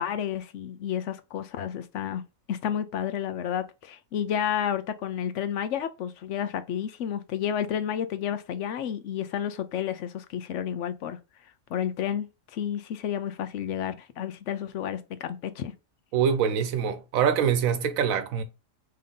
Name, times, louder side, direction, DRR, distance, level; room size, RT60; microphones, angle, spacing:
voice 1, 0.0-2.2 2.5-11.2 11.7-12.3 12.5-15.7, left 9 dB, 70° left, 0.9 m, -31 dB
voice 2, 16.1-18.4, right 7 dB, 90° right, 1.1 m, -24 dB
3.7 x 3.3 x 3.7 m
omnidirectional pair, 1.4 m